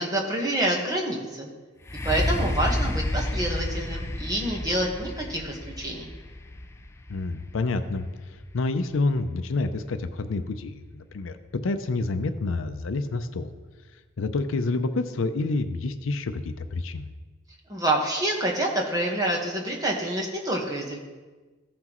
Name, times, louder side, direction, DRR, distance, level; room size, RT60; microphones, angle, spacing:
voice 1, 0.0-1.5 2.0-6.1 17.7-21.0, right 1 dB, 20° right, -1 dB, 1.3 m, -27 dB
sound 1, 1.8-9.6 10.2-10.3, left 1 dB, 15° left, 0.3 m, -31 dB
voice 2, 7.1-13.5 14.2-17.1, left 3 dB, 70° left, 9 dB, 0.5 m, -28 dB
14.5 x 5.9 x 3.0 m, 1.3 s
head